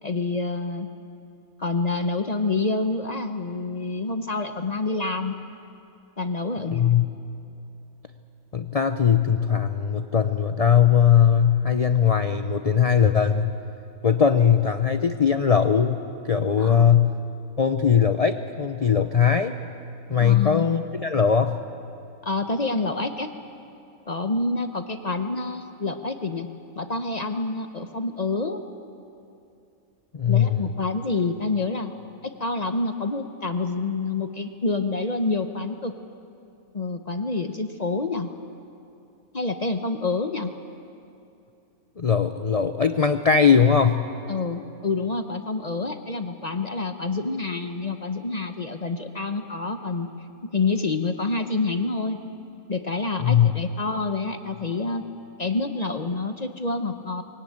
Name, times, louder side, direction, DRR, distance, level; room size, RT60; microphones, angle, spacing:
voice 1, 0.0-0.9 1.6-5.3 6.2-6.9 16.5-16.9 20.2-20.7 22.2-23.3 24.1-26.5 26.7-28.6 30.3-31.9 32.2-35.9 36.7-38.3 39.3-40.5 44.3-50.1 50.4-52.2 52.7-55.0 55.4-57.2, left 3 dB, 35° left, 7 dB, 0.8 m, -27 dB
voice 2, 6.7-7.1 8.5-13.5 14.0-16.0 16.2-17.2 17.6-19.5 20.1-21.6 30.1-30.6 42.0-44.1 53.2-53.5, left 7 dB, 60° left, 8 dB, 0.3 m, -20 dB
22.0 x 18.0 x 8.7 m, 2.7 s
omnidirectional pair, 1.6 m